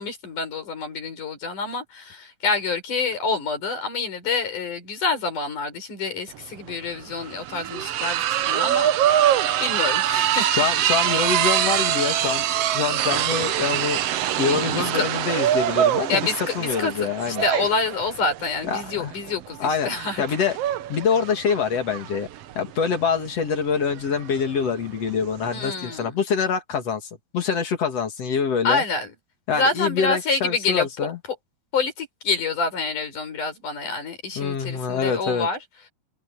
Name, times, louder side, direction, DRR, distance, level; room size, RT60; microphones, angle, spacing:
voice 1, 0.0-10.5 14.7-15.0 16.1-20.2 25.5-26.1 28.6-29.1 29.5-30.9 31.7-35.6, left 4 dB, 80° left, 6.8 m, -27 dB
sound 1, 6.3-6.4 6.7-25.5, right 11 dB, 65° right, 1.7 m, -24 dB
voice 2, 10.5-12.4 12.7-14.0 14.4-17.4 18.6-19.1 19.6-20.6 20.9-22.3 22.5-28.8 29.5-31.2 34.4-35.5, left 6 dB, 55° left, 3.0 m, -25 dB
open air
omnidirectional pair, 3.6 m